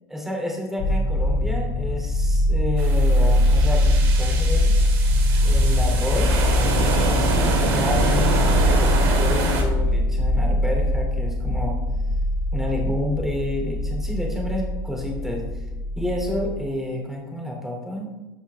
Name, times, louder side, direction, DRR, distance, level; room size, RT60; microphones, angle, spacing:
voice 1, 0.1-4.8 5.4-6.5 6.9-8.5 8.7-11.8 12.5-15.4 16.0-18.1, left 1 dB, 5° right, 0 dB, 2.9 m, -30 dB
sound 1, 0.8-16.7, left 1 dB, 40° left, 1.5 m, -21 dB
sound 2, 2.8-9.6, right 3 dB, 80° right, 2.5 m, -26 dB
14.0 x 5.5 x 3.5 m, 1.1 s
supercardioid pair, 110°, 13 cm